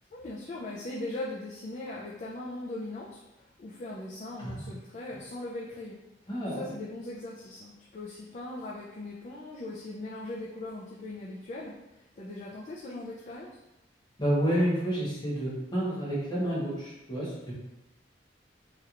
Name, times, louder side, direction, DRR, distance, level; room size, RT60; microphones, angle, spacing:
voice 1, 0.1-3.2 3.6-6.0 6.4-11.7 12.2-13.5, left 2 dB, 40° left, -5 dB, 0.4 m, -39 dB
voice 2, 6.3-6.7 14.2-17.5, equal, 25° left, -7 dB, 1.1 m, -29 dB
3.2 x 2.9 x 2.4 m, 0.96 s
head